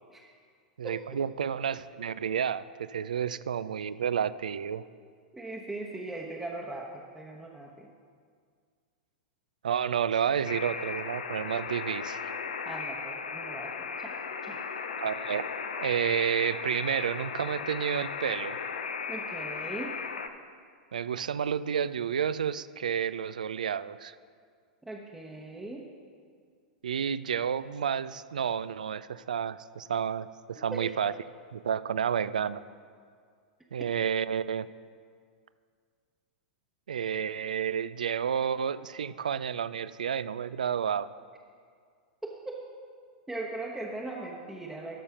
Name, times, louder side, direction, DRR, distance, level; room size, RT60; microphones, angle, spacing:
voice 1, 0.8-4.8 9.6-12.3 15.0-15.5 15.8-18.6 20.9-24.1 26.8-31.1 31.5-32.6 33.7-34.7 36.9-41.1, right 8 dB, 75° right, 16 dB, 0.3 m, -30 dB
voice 2, 5.3-7.9 12.6-14.6 19.1-20.0 24.8-25.9 30.6-31.0 42.2-42.6 43.3-45.0, right 2 dB, 5° right, -2 dB, 0.9 m, -39 dB
Alarm, 10.5-20.3, left 5 dB, 75° left, 0.6 m, -36 dB
12.5 x 5.5 x 5.7 m, 2.1 s
figure-of-eight pair, 100°, 4 cm